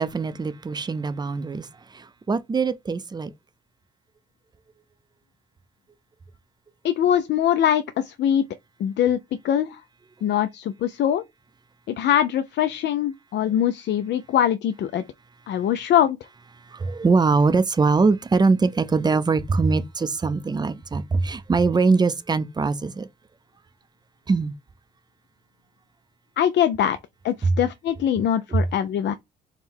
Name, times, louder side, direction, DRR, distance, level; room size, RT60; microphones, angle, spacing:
voice 1, 0.0-3.3 16.7-23.1 24.3-24.5 27.4-27.5 28.5-28.6, right 4 dB, 20° right, 0.4 m, -22 dB
voice 2, 6.8-8.4 8.8-9.2 9.4-9.8 10.2-11.2 11.9-15.0 15.5-16.2 26.4-27.0 27.2-29.1, left 10 dB, 60° left, 0.4 m, -22 dB
3.7 x 2.1 x 4.4 m
cardioid pair, 90°, 20 cm